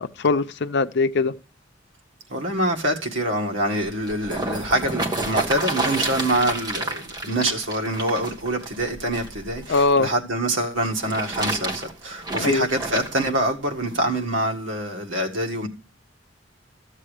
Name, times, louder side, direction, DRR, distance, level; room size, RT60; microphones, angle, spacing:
voice 1, 0.0-1.3 9.7-10.1 12.4-12.7, left 3 dB, 60° left, 0.6 m, -21 dB
voice 2, 2.3-15.7, right 1 dB, 75° right, 1.8 m, -25 dB
sound 1, 3.8-9.9 10.8-13.3 14.0-14.1, right 2 dB, 20° right, 1.5 m, -30 dB
14.0 x 7.4 x 5.0 m
head